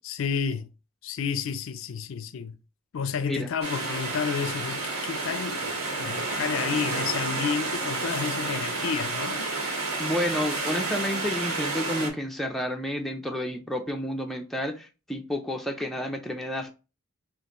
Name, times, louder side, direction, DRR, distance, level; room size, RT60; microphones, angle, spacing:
voice 1, 0.0-0.7 1.0-2.6 2.9-9.5, left 6 dB, 65° left, 0.4 m, -31 dB
sound 1, 3.6-12.1, right 3 dB, 90° right, 1.5 m, -30 dB
voice 2, 10.0-16.7, left 1 dB, ahead, 0.4 m, -30 dB
5.3 x 2.5 x 2.9 m
head